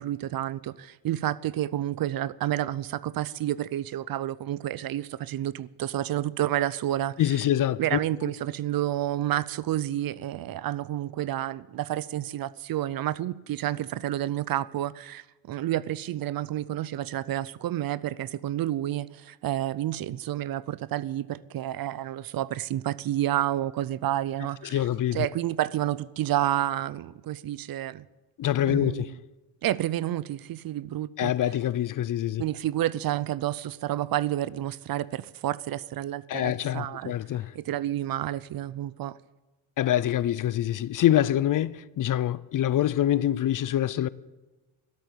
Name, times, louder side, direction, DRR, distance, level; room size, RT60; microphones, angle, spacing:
voice 1, 0.0-7.4 7.8-24.8 25.1-28.0 28.7-29.2 29.6-31.3 32.4-37.1 37.5-39.2, right 13 dB, 50° right, 0.6 m, -30 dB
voice 2, 7.2-8.0 24.7-25.3 28.4-29.1 31.2-32.4 36.3-37.5 39.8-44.1, left 12 dB, 45° left, 0.5 m, -25 dB
13.0 x 8.3 x 8.2 m
cardioid pair, 110°, 46 cm